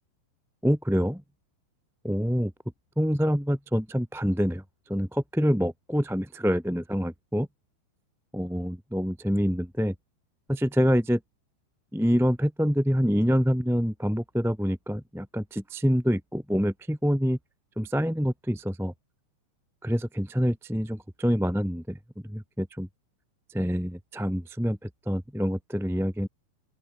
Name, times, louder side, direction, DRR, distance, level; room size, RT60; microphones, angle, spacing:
voice 1, 0.6-1.2 2.0-2.5 3.0-4.6 4.9-7.5 8.3-9.9 10.5-11.2 11.9-17.4 17.8-18.9 19.8-22.0 22.2-22.9 23.5-26.3, equal, ahead, 1.9 m, -26 dB
open air
omnidirectional pair, 5.7 m